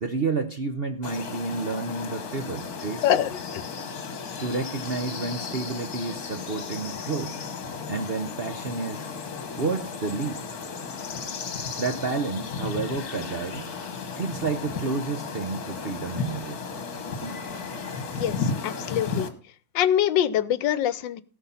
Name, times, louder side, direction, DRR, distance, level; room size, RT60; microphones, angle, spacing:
voice 1, 0.0-3.0 4.4-7.3 7.9-9.1 9.6-10.4 11.8-17.4, right 4 dB, 50° right, 7 dB, 0.7 m, -30 dB
sound 1, 1.0-19.3, left 5 dB, 55° left, 1.8 m, -34 dB
voice 2, 3.0-3.6 18.1-19.3 19.7-21.2, left 11 dB, 75° left, 17 dB, 1.4 m, -24 dB
17.0 x 5.9 x 5.6 m, 0.41 s
omnidirectional pair, 2.1 m